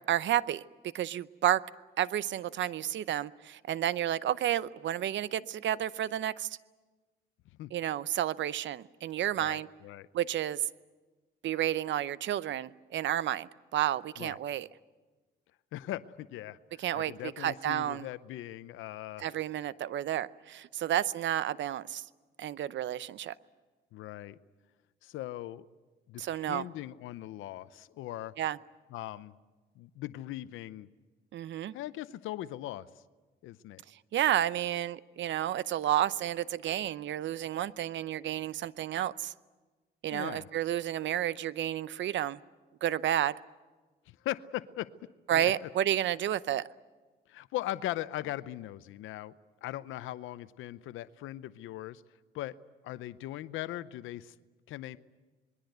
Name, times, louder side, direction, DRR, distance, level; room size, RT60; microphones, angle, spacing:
voice 1, 0.1-0.6 0.9-1.6 2.0-6.5 7.7-9.7 10.1-10.6 11.4-14.7 16.8-18.1 19.2-22.0 22.4-23.3 26.2-26.7 28.4-28.6 31.3-31.7 34.1-39.3 40.0-42.4 42.8-43.3 45.3-46.7, right 11 dB, 70° right, 17 dB, 0.7 m, -31 dB
voice 2, 9.4-10.1 14.2-14.4 15.7-19.3 23.9-24.4 25.0-25.7 26.1-28.3 28.9-29.3 29.8-30.9 31.7-32.9 33.4-33.8 40.1-40.5 44.1-44.9 45.3-45.7 47.3-49.3 49.6-52.0 52.3-52.6 52.8-54.3 54.7-55.0, left 14 dB, 90° left, 15 dB, 0.7 m, -39 dB
27.0 x 21.5 x 8.0 m, 1.3 s
cardioid pair, 90°, 20 cm